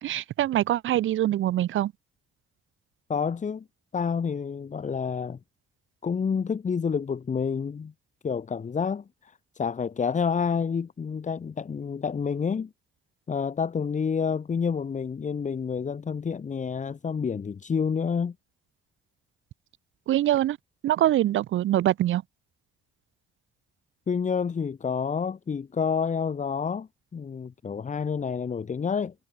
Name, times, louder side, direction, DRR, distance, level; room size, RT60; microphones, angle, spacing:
voice 1, 0.0-1.9 20.1-20.6 20.8-22.2, right 13 dB, 75° right, 2.2 m, -24 dB
voice 2, 3.1-3.6 3.9-5.4 6.0-7.9 8.2-12.7 13.3-18.3 24.1-29.1, left 6 dB, 40° left, 1.9 m, -29 dB
cardioid pair, 90°, 20 cm